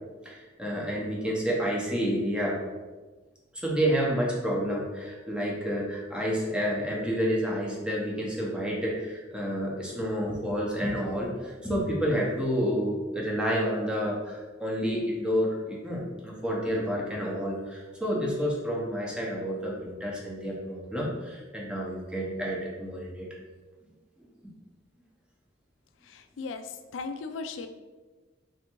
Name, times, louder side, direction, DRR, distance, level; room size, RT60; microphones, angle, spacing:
voice 1, 0.2-2.6 3.5-23.3, equal, 5° right, -3 dB, 0.8 m, -29 dB
voice 2, 26.1-27.7, left 4 dB, 85° left, 8 dB, 0.4 m, -37 dB
3.5 x 2.6 x 4.4 m, 1.3 s
head